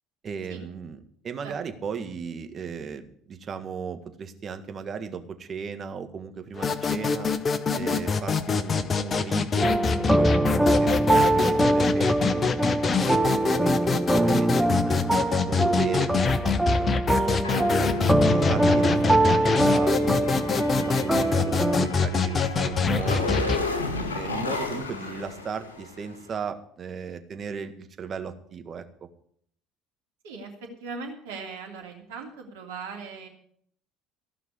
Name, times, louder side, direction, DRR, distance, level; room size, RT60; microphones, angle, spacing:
voice 1, 0.2-1.0 1.2-7.3 7.7-15.0 15.5-17.9 18.3-23.7 24.1-28.8, right 6 dB, 40° right, 8 dB, 1.7 m, -36 dB
sound 1, 6.6-23.6, left 5 dB, 35° left, 1.1 m, -25 dB
voice 2, 7.7-8.0 30.2-33.3, right 4 dB, 75° right, 2 dB, 2.9 m, -38 dB
sound 2, 9.6-21.9, right 1 dB, 10° right, 0.9 m, -23 dB
sound 3, 17.4-26.1, left 3 dB, 90° left, 1.6 m, -33 dB
15.0 x 6.0 x 9.5 m, 0.65 s
hypercardioid pair, 65°, 0 cm